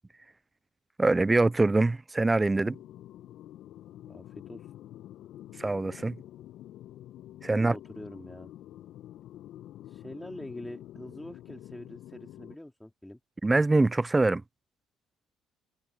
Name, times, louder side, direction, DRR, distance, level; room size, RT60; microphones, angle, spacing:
voice 1, 1.0-2.8 5.6-6.2 7.4-7.8 13.4-14.4, right 2 dB, 20° right, 0.7 m, -24 dB
sound 1, 2.6-12.5, left 13 dB, 60° left, 1.3 m, -47 dB
voice 2, 4.0-4.7 7.5-8.5 9.9-13.2, left 1 dB, 10° left, 3.5 m, -44 dB
hypercardioid pair, 55°, 0 cm